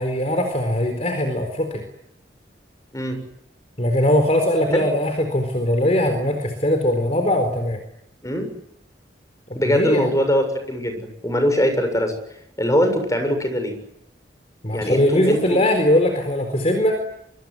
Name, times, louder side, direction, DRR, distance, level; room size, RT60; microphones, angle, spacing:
voice 1, 0.0-1.8 3.8-7.8 9.5-10.1 14.6-17.0, left 1 dB, 40° left, 6 dB, 4.2 m, -20 dB
voice 2, 9.6-12.1 12.6-13.8 14.7-15.6, equal, 20° left, 7 dB, 7.1 m, -21 dB
25.0 x 24.5 x 9.7 m, 0.78 s
head